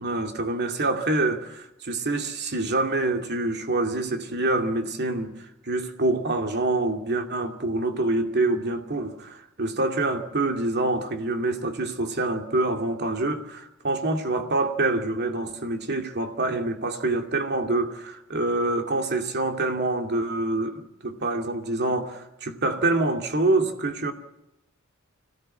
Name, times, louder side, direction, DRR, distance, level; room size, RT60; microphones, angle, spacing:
voice 1, 0.0-5.4 5.6-24.1, right 2 dB, 50° right, 2.5 m, -26 dB
25.5 x 17.5 x 7.7 m
head